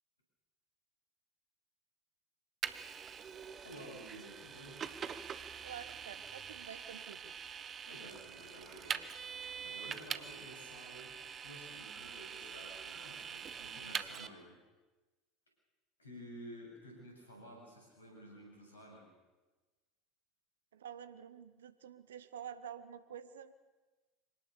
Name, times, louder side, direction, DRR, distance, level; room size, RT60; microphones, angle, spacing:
Vehicle, 2.6-14.3, right 7 dB, 35° right, 1.2 m, -44 dB
voice 1, 3.6-4.9 7.8-9.1 9.6-11.1 11.4-14.6 16.0-19.1, equal, 85° left, 0 dB, 7.8 m, -52 dB
voice 2, 5.6-7.3 20.7-23.5, right 8 dB, 75° right, 13 dB, 1.2 m, -49 dB
25.0 x 18.5 x 7.0 m, 1.2 s
figure-of-eight pair, 75°, 0 cm